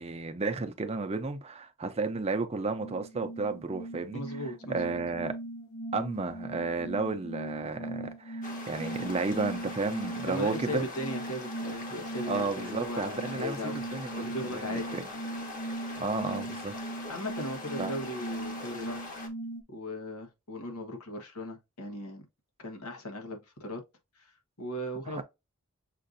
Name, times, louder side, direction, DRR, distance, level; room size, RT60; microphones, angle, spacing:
voice 1, 0.0-4.2 4.7-5.3 5.9-10.9 12.3-15.0 16.0-16.7 17.8-17.9 25.1-25.2, right 3 dB, 30° right, 0.5 m, -33 dB
sound 1, 2.8-19.6, right 1 dB, 60° left, 0.7 m, -39 dB
voice 2, 4.1-5.0 10.3-13.8 14.2-15.0 17.1-19.1 19.7-22.3 22.6-23.8 24.2-25.2, left 1 dB, 85° left, 1.2 m, -38 dB
sound 2, 8.4-19.3, left 2 dB, 35° left, 0.9 m, -43 dB
6.5 x 2.5 x 2.6 m
head